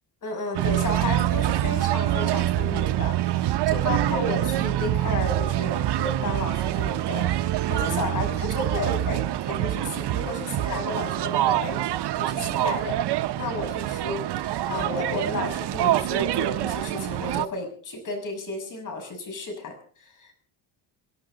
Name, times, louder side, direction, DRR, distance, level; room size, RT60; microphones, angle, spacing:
voice 1, 0.2-11.8 12.2-13.0 13.4-20.4, left 3 dB, 40° left, 4 dB, 6.5 m, -33 dB
sound 1, 0.5-17.5, right 13 dB, 55° right, 0.9 m, -25 dB
28.0 x 10.5 x 3.9 m, 0.44 s
cardioid pair, 130°, 49 cm